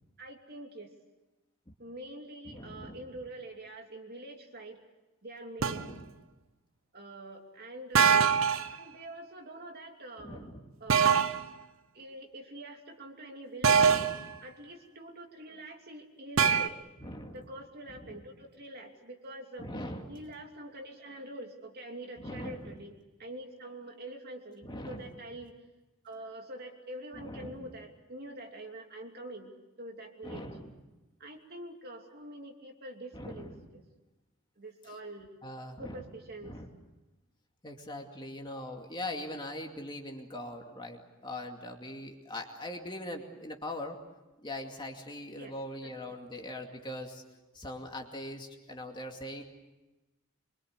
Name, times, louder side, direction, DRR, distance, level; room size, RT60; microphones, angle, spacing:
voice 1, 0.2-0.9 1.8-4.8 5.2-5.8 6.9-8.4 8.7-10.5 10.8-11.3 11.9-13.9 14.4-16.8 17.3-19.7 20.1-22.9 23.2-25.6 26.0-30.5 31.2-33.8 34.6-35.4 35.8-36.6 45.3-45.6 45.8-46.2, right 1 dB, 50° right, 2 dB, 2.9 m, -45 dB
voice 2, 2.5-3.0 5.6-6.0 10.2-10.6 13.7-14.3 17.0-17.4 17.9-18.2 19.6-20.2 22.2-22.7 24.6-25.1 27.1-27.6 30.2-30.7 33.1-33.5 35.4-36.0 36.4-36.7 37.6-44.0 44.4-47.2 47.5-49.4, left 1 dB, 20° left, 2 dB, 2.4 m, -41 dB
sound 1, 5.6-5.9 8.0-8.7 10.9-11.4 13.6-14.3 16.4-16.7, right 6 dB, 70° right, 0.9 m, -23 dB
25.0 x 23.5 x 8.1 m, 1.1 s
head